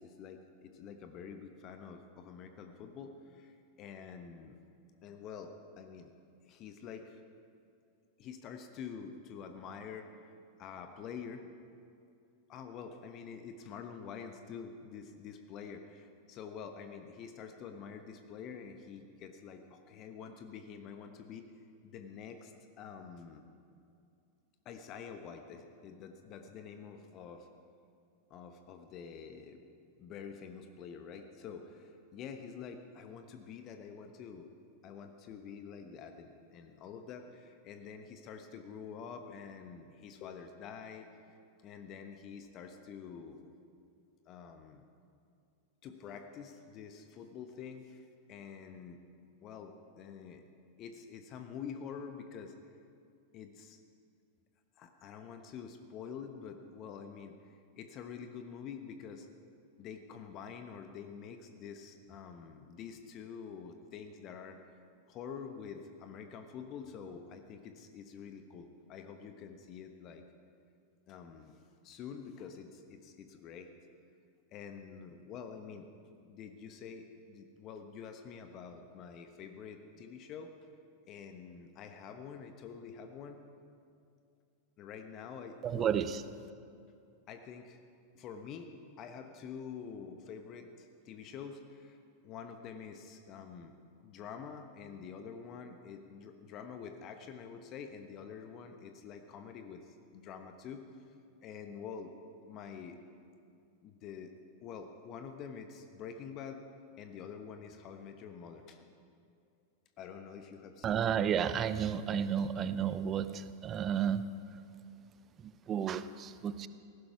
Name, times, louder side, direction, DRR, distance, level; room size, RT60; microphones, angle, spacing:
voice 1, 0.0-4.6 5.0-6.1 6.4-7.2 8.2-10.3 10.6-11.4 12.5-21.5 21.8-23.4 24.6-27.5 28.3-29.6 30.0-34.5 34.8-41.1 41.6-43.5 44.3-44.9 45.8-49.0 49.4-50.4 50.8-52.5 53.3-53.8 54.8-59.3 59.8-64.6 65.1-70.2 71.1-71.6 71.8-73.7 74.5-75.9 76.2-80.5 81.1-83.5 84.8-85.9 86.3-86.5 87.3-87.8 88.1-101.0 101.4-102.1 102.5-103.0 103.8-104.3 104.6-106.6 107.0-108.9 110.0-111.1, left 6 dB, 35° left, 7 dB, 1.1 m, -47 dB
voice 2, 85.6-86.2 110.8-114.2 115.4-116.7, right 8 dB, 30° right, 14 dB, 0.7 m, -32 dB
18.0 x 15.5 x 4.7 m, 2.5 s
figure-of-eight pair, 90°, 0 cm